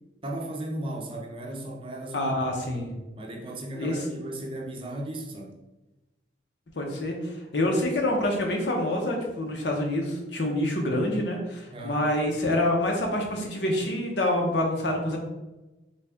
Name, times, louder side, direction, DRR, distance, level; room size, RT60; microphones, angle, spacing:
voice 1, 0.2-2.3 3.2-5.5 11.7-12.0, right 1 dB, 30° right, 0 dB, 0.5 m, -36 dB
voice 2, 2.1-2.9 3.8-4.0 6.8-15.2, left 1 dB, 80° left, 1 dB, 0.8 m, -27 dB
4.1 x 2.3 x 3.4 m, 1.0 s
head